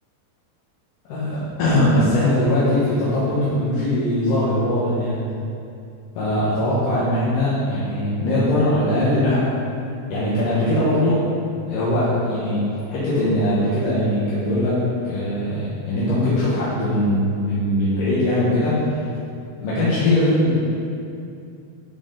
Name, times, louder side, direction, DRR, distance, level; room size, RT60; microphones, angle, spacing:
voice 1, 1.1-5.2 6.2-9.5 10.1-11.2 11.7-12.6 12.9-14.8 15.1-18.7 19.6-20.5, left 1 dB, 60° left, -10 dB, 2.4 m, -20 dB
12.5 x 4.8 x 3.9 m, 2.5 s
omnidirectional pair, 5.2 m